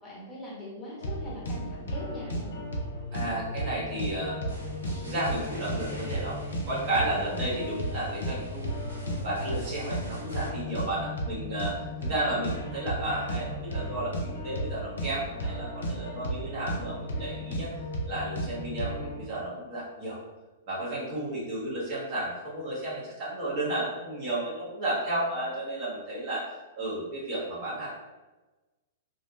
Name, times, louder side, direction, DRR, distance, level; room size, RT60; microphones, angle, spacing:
voice 1, 0.0-2.6 7.1-7.4 12.0-12.6, equal, 15° left, -6 dB, 1.1 m, -42 dB
sound 1, 1.0-19.2, equal, 70° left, 0.5 m, -34 dB
voice 2, 3.1-4.5 5.0-6.4 6.7-8.9 9.2-17.7 18.1-20.2 20.7-26.4 26.8-27.9, right 1 dB, 40° right, -7 dB, 1.1 m, -33 dB
sound 2, 4.5-10.5, equal, 80° right, 1.2 m, -43 dB
2.6 x 2.2 x 2.7 m, 1.2 s
figure-of-eight pair, 105°, 0 cm